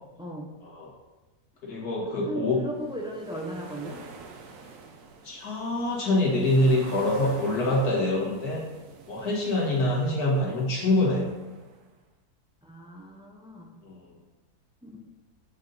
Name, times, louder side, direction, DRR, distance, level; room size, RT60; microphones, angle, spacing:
voice 1, 0.2-0.5 2.2-4.0 12.6-13.7 14.8-15.0, right 1 dB, 5° right, -1 dB, 0.4 m, -37 dB
voice 2, 1.6-2.6 5.2-8.7 9.1-11.2 13.8-14.1, left 1 dB, 70° left, -4 dB, 2.2 m, -25 dB
sound 1, 2.7-11.9, right 4 dB, 60° right, 1.1 m, -47 dB
7.3 x 5.4 x 3.9 m, 1.1 s
omnidirectional pair, 1.7 m